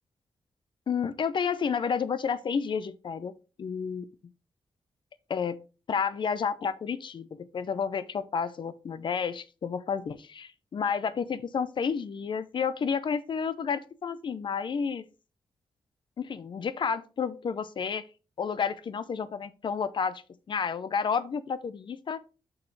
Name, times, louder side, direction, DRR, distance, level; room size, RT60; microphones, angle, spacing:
voice 1, 0.9-4.1 5.3-5.6 5.9-15.0 16.2-18.0 18.4-20.2 20.5-22.2, left 6 dB, 55° left, 0.6 m, -31 dB
6.4 x 6.1 x 3.2 m
wide cardioid pair, 110°, 10 cm